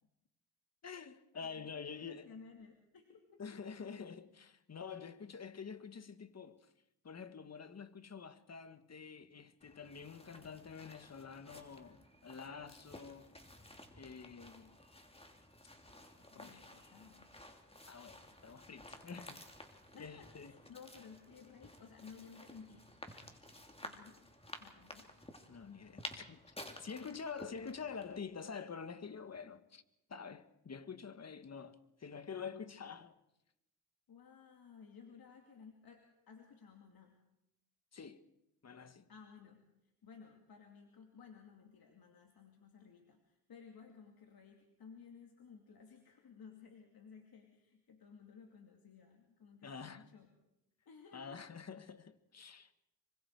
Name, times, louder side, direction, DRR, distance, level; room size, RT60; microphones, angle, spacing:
voice 1, 0.8-2.3 3.4-6.7 7.0-13.3 14.0-14.7 16.3-16.8 17.9-19.5 20.0-20.5 25.5-29.8 30.1-33.2 37.9-38.2 38.6-39.1 49.6-50.0 51.1-52.7, left 6 dB, 40° left, 1.5 m, -48 dB
voice 2, 1.3-3.6 16.0-17.3 19.9-22.9 23.8-24.2 24.6-25.2 34.1-37.1 39.1-39.6 40.0-50.3 50.9-51.4, left 6 dB, 60° left, 2.6 m, -57 dB
sound 1, 9.6-28.2, left 1 dB, 15° left, 3.1 m, -54 dB
26.5 x 24.0 x 4.8 m
cardioid pair, 75°, 40 cm